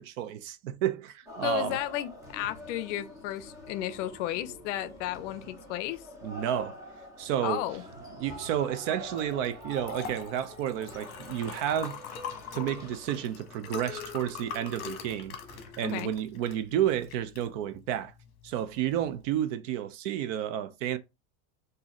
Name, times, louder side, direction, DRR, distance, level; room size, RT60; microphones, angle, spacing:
voice 1, 0.0-1.8 6.2-6.8 7.2-7.6 8.2-12.0 12.5-15.4 15.8-18.1 18.4-21.0, right 10 dB, 60° right, 0.5 m, -31 dB
sound 1, 1.3-16.2, equal, 10° right, 0.4 m, -47 dB
voice 2, 1.4-6.0 7.4-7.8 15.8-16.1, left 12 dB, 60° left, 0.5 m, -33 dB
Liquid, 9.1-19.3, left 6 dB, 40° left, 1.0 m, -43 dB
3.9 x 2.7 x 2.9 m
supercardioid pair, 165°, 43 cm